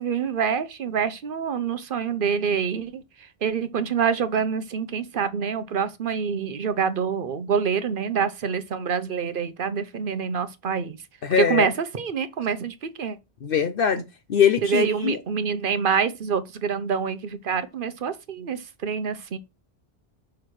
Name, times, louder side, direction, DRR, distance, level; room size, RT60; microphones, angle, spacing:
voice 1, 0.0-3.0 3.4-11.0 11.4-13.2 14.6-19.4, right 6 dB, 60° right, 0.9 m, -26 dB
voice 2, 11.2-11.7 13.4-14.0 14.3-15.2, left 8 dB, 65° left, 0.9 m, -22 dB
6.2 x 4.5 x 6.4 m
omnidirectional pair, 1.0 m